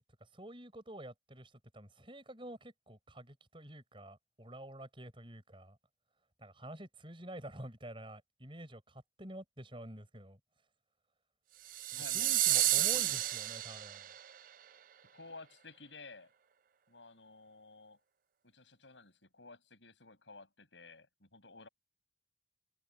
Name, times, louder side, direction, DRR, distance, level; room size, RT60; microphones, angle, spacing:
voice 1, 0.0-5.8 6.4-10.4 11.9-14.1, right 1 dB, 30° right, 7.5 m, -49 dB
sound 1, 11.7-14.2, right 14 dB, 50° right, 0.5 m, -31 dB
voice 2, 11.9-12.4 12.6-13.3 15.1-16.3 16.9-18.0 18.4-21.7, left 3 dB, 90° left, 8.0 m, -54 dB
open air
head